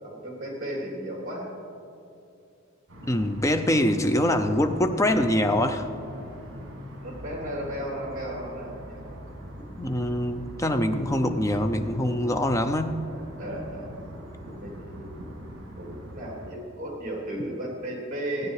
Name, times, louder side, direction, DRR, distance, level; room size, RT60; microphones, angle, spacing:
voice 1, 0.0-1.5 7.0-9.1 13.1-14.0 14.6-15.1 15.8-18.5, right 1 dB, 40° right, -2 dB, 3.2 m, -35 dB
sound 1, 2.9-16.5, equal, 60° right, 2.6 m, -42 dB
voice 2, 3.1-5.9 9.8-13.0, left 1 dB, 15° left, 7 dB, 0.6 m, -24 dB
16.5 x 9.5 x 4.8 m, 2.6 s
head